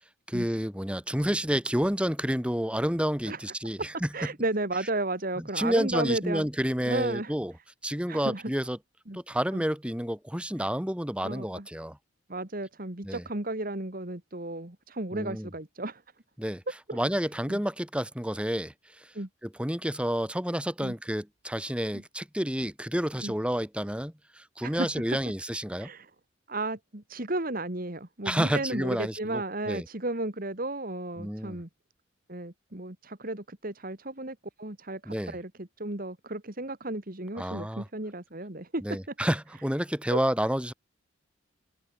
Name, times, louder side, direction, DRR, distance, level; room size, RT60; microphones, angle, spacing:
voice 1, 0.3-4.1 5.4-7.5 7.8-8.8 9.1-12.0 13.0-13.2 15.1-15.5 16.4-16.6 16.9-19.1 19.4-25.9 28.2-29.8 31.2-31.6 35.1-35.4 37.4-37.9 38.8-40.7, equal, 5° right, 2.4 m, -30 dB
voice 2, 3.3-3.9 4.1-6.5 6.8-7.3 8.1-8.5 9.1-9.2 9.5-9.6 11.2-11.7 12.3-16.0 16.7-17.0 17.5-17.6 19.1-19.3 20.8-20.9 21.9-22.0 23.2-23.3 24.6-24.9 25.8-26.1 26.5-31.7 32.3-39.0 40.1-40.2, right 2 dB, 45° right, 2.1 m, -34 dB
head